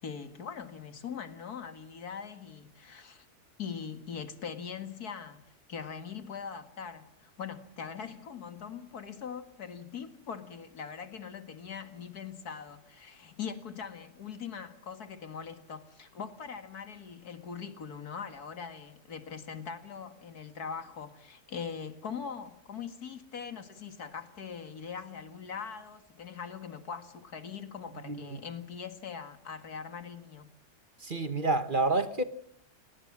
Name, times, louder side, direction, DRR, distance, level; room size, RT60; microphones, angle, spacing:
voice 1, 0.0-3.3 3.6-30.5, left 6 dB, 80° left, 2.4 m, -41 dB
voice 2, 28.1-28.4 31.0-32.2, right 2 dB, 35° right, 1.4 m, -29 dB
29.0 x 18.5 x 7.4 m
omnidirectional pair, 1.6 m